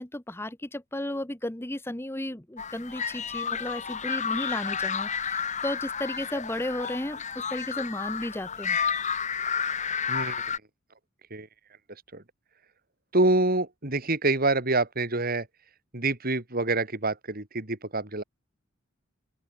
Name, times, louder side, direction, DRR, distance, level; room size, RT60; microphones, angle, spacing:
voice 1, 0.0-8.8, left 1 dB, 10° left, 1.1 m, -34 dB
sound 1, 2.6-10.6, left 7 dB, 35° left, 2.9 m, -31 dB
voice 2, 10.1-10.4 11.3-11.5 12.1-12.2 13.1-15.5 15.9-18.2, right 2 dB, 45° right, 3.2 m, -26 dB
open air
head